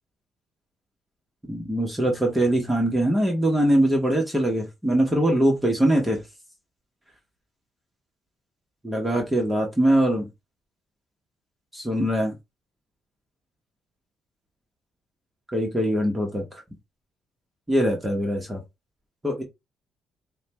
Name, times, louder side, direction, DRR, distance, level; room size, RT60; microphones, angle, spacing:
voice 1, 1.5-6.2 8.8-10.3 11.7-12.3 15.5-16.4 17.7-18.6 19.2-19.4, right 1 dB, 15° right, 1.2 m, -22 dB
4.8 x 2.2 x 3.0 m
cardioid pair, 90°, 0 cm